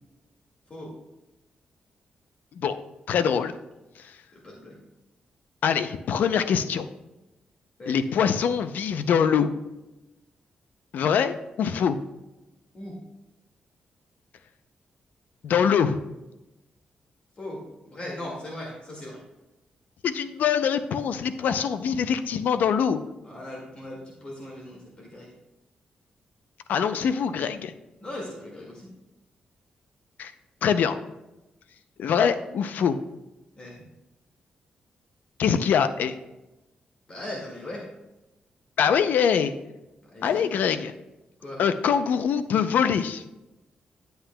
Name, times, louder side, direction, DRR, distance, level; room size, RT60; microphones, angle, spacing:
voice 1, 3.1-3.5 5.6-6.9 7.9-9.5 10.9-12.0 15.4-16.0 20.0-23.0 26.7-27.7 30.2-30.3 30.6-31.0 32.0-33.0 35.4-36.2 38.8-39.5 40.2-40.9 41.6-43.2, left 7 dB, 85° left, 11 dB, 0.5 m, -23 dB
voice 2, 4.3-4.8 7.8-8.0 12.7-12.9 17.4-17.6 17.8-19.2 21.4-21.6 23.2-25.3 28.0-28.9 33.6-33.7 37.1-37.8 40.1-40.4 41.4-41.6, left 1 dB, 40° left, -3 dB, 2.0 m, -38 dB
11.5 x 8.0 x 2.2 m, 0.99 s
wide cardioid pair, 130°, 3 cm